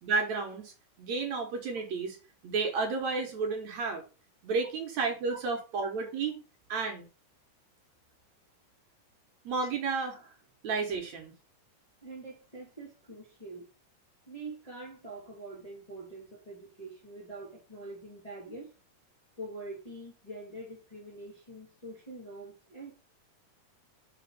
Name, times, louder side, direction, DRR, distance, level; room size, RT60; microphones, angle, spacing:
voice 1, 0.0-0.7 1.0-2.2 2.4-4.0 4.4-6.3 6.7-7.1 9.5-10.3 10.6-11.3, right 4 dB, 65° right, 2.3 m, -31 dB
voice 2, 12.0-13.7 14.3-18.7 19.4-22.9, right 2 dB, 15° left, 1.8 m, -44 dB
6.1 x 4.5 x 6.0 m
omnidirectional pair, 3.8 m